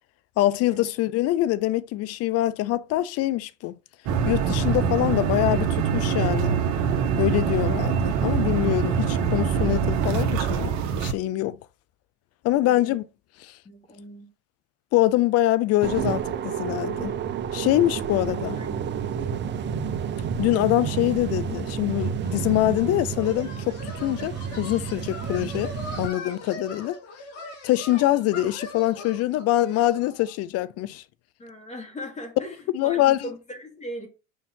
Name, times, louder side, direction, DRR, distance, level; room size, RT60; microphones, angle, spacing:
voice 1, 0.4-3.8 4.3-6.6 7.2-10.7 11.0-11.6 12.4-13.0 13.4-13.5 14.9-17.2 17.5-18.6 20.4-25.7 26.0-27.0 27.6-31.0 32.7-33.3, left 15 dB, 40° left, 0.6 m, -24 dB
sound 1, 4.1-11.1, right 6 dB, 50° right, 1.4 m, -24 dB
voice 2, 12.6-13.0 13.6-14.3 18.6-19.4 31.4-34.1, equal, 20° left, 2.9 m, -39 dB
sound 2, 15.8-26.1, right 8 dB, 30° right, 0.7 m, -30 dB
sound 3, 22.2-30.3, left 2 dB, 70° left, 3.3 m, -40 dB
6.4 x 5.4 x 4.5 m
hypercardioid pair, 105°, 37 cm